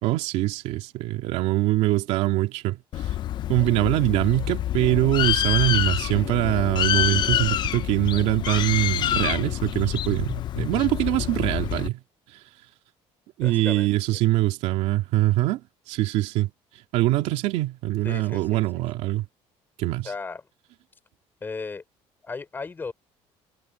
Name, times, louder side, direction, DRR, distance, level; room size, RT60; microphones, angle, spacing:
voice 1, 0.0-2.8 3.5-12.0 13.4-15.6 15.9-16.5 16.9-19.2 19.8-20.1, right 16 dB, 80° right, 2.7 m, -23 dB
Bird, 2.9-11.9, left 11 dB, 40° left, 0.5 m, -26 dB
voice 2, 13.4-13.9 18.0-18.8 20.0-20.4 21.4-21.8 22.2-22.9, left 4 dB, 20° left, 3.7 m, -35 dB
cardioid pair, 165°, 11 cm